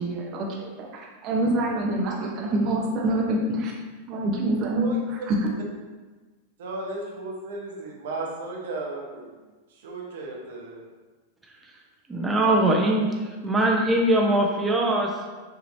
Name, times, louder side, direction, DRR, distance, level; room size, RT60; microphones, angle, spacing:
voice 1, 0.0-3.7 4.1-5.5, right 1 dB, 45° right, -1 dB, 0.8 m, -26 dB
voice 2, 6.6-9.3 9.7-10.9, right 2 dB, 70° right, -2 dB, 1.0 m, -34 dB
voice 3, 12.1-15.1, right 1 dB, 15° right, -1 dB, 0.8 m, -22 dB
6.1 x 2.9 x 2.7 m, 1.3 s
hypercardioid pair, 100°, 0 cm